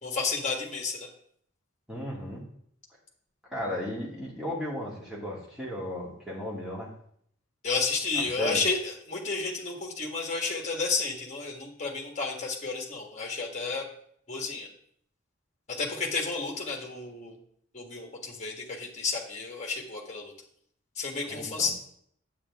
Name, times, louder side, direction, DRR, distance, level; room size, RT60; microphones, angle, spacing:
voice 1, 0.0-1.1 7.6-13.8 14.3-14.7 15.7-17.4 17.7-20.3 20.9-21.7, left 4 dB, 35° left, 0 dB, 1.6 m, -31 dB
voice 2, 1.9-2.4 3.5-6.9 8.4-8.6 21.3-21.7, equal, 5° right, -5 dB, 2.3 m, -35 dB
8.4 x 8.0 x 3.6 m, 0.66 s
head